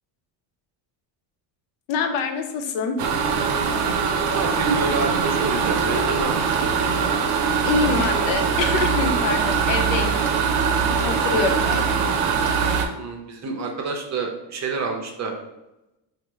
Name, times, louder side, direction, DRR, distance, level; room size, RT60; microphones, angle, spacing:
voice 1, 1.9-3.0 7.6-10.2 11.0-12.0, left 5 dB, 85° left, 5 dB, 0.6 m, -25 dB
sound 1, 3.0-12.9, right 6 dB, 85° right, 0.6 m, -22 dB
voice 2, 4.3-6.7 11.3-11.4 12.9-15.3, right 4 dB, 35° right, 3 dB, 0.5 m, -28 dB
3.3 x 2.1 x 3.0 m, 0.94 s
cardioid pair, 100°, 49 cm